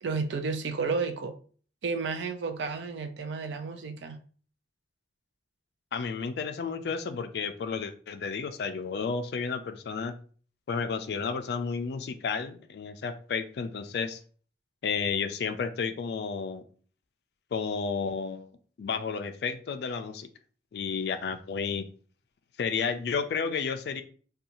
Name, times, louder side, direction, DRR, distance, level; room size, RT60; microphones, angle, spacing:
voice 1, 0.0-1.3 1.8-4.2, right 4 dB, 80° right, 7 dB, 0.4 m, -32 dB
voice 2, 5.9-10.1 10.7-14.2 14.8-16.6 17.5-18.5 18.8-20.3 20.7-21.8 22.6-24.0, left 5 dB, 60° left, 9 dB, 0.3 m, -32 dB
2.6 x 2.3 x 2.8 m, 0.43 s
head